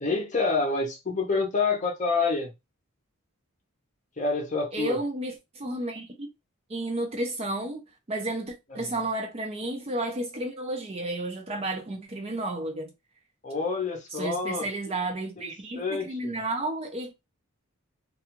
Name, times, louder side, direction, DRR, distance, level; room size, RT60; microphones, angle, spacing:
voice 1, 0.0-2.5 4.2-5.0 8.7-8.8 13.4-14.9 15.4-16.3, left 4 dB, 35° left, 0.6 m, -28 dB
voice 2, 4.7-6.3 6.7-12.9 14.1-17.1, right 1 dB, 25° right, 0.4 m, -32 dB
2.4 x 2.3 x 2.9 m
head